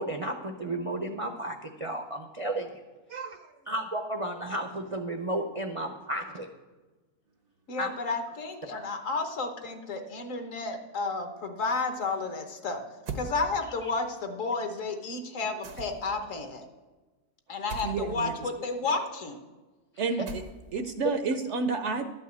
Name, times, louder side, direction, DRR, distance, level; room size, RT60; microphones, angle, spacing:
voice 1, 0.0-2.8 3.7-6.5 7.8-7.9 13.8-13.9, right 1 dB, 35° right, 4 dB, 0.5 m, -33 dB
voice 2, 3.1-3.5 17.8-18.3 20.0-20.4 20.7-22.1, right 4 dB, 60° right, 8 dB, 0.9 m, -30 dB
voice 3, 7.7-12.8 13.1-16.6 17.5-19.4, left 3 dB, 60° left, 6 dB, 1.4 m, -32 dB
sound 1, 13.1-13.3 15.6-16.2 17.7-18.0 20.3-20.8, right 4 dB, 85° right, 1.6 m, -38 dB
12.0 x 5.5 x 8.1 m, 1.2 s
omnidirectional pair, 1.6 m